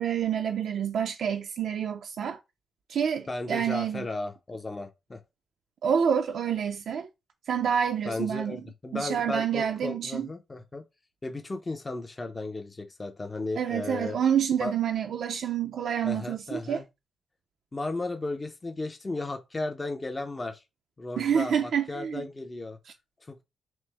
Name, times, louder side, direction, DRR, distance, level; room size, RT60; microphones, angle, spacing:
voice 1, 0.0-2.4 2.9-4.0 5.8-7.1 7.5-8.6 8.9-10.3 13.6-16.8 21.2-22.2, right 8 dB, 65° right, 0.5 m, -28 dB
voice 2, 3.3-5.2 8.0-10.8 11.2-14.2 14.6-14.7 16.0-16.9 17.7-20.6 21.0-22.8 23.3-23.4, left 2 dB, 20° left, 0.6 m, -35 dB
6.0 x 2.0 x 3.4 m
wide cardioid pair, 140°, 0 cm